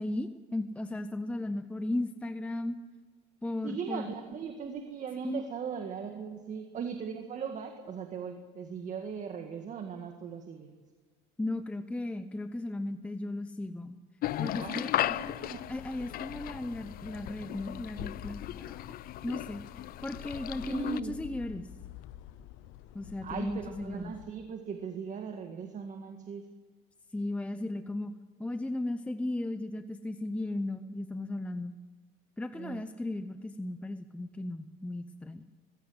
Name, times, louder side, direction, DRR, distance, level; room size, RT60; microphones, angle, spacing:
voice 1, 0.0-2.8 3.4-4.1 5.2-5.4 11.4-14.0 14.4-15.2 15.7-18.8 19.2-19.6 20.0-21.7 22.9-24.1 27.1-28.1 28.4-31.7 32.4-35.4, left 2 dB, 5° left, 9 dB, 0.7 m, -36 dB
voice 2, 3.6-10.7 14.5-15.7 20.6-21.2 23.2-26.4 32.5-32.9, right 6 dB, 35° right, 5 dB, 1.8 m, -39 dB
sound 1, 14.2-21.0, left 13 dB, 45° left, 0.6 m, -36 dB
sound 2, 15.0-24.4, left 12 dB, 75° left, 1.0 m, -48 dB
20.0 x 16.0 x 8.1 m, 1.4 s
cardioid pair, 135°, 21 cm